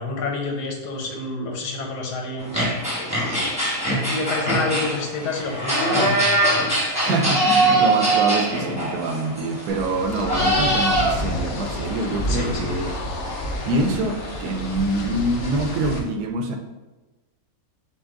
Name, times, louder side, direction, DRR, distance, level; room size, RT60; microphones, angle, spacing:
voice 1, 0.0-2.6 4.1-6.3 12.3-12.7, left 3 dB, 90° left, 1 dB, 1.4 m, -28 dB
sound 1, 2.4-16.0, right 1 dB, 5° right, 0.9 m, -24 dB
voice 2, 6.9-12.9 13.7-16.6, right 2 dB, 75° right, 5 dB, 1.1 m, -25 dB
sound 2, 9.7-16.0, left 1 dB, 70° left, 1.0 m, -30 dB
5.6 x 2.3 x 3.7 m, 1.1 s
omnidirectional pair, 1.7 m